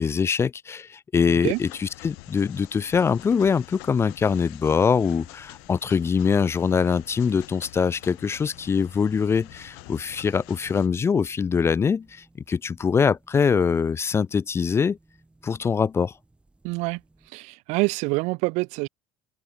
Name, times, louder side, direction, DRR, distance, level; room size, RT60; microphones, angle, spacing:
voice 1, 0.0-15.0 15.4-16.1, left 6 dB, 20° left, 0.6 m, -23 dB
sound 1, 1.4-10.9, left 32 dB, 90° left, 6.6 m, -47 dB
sound 2, 3.6-17.3, right 2 dB, 10° right, 5.6 m, -58 dB
voice 2, 16.6-17.0 17.3-18.9, right 26 dB, 70° right, 0.6 m, -26 dB
open air
cardioid pair, 140°, 12 cm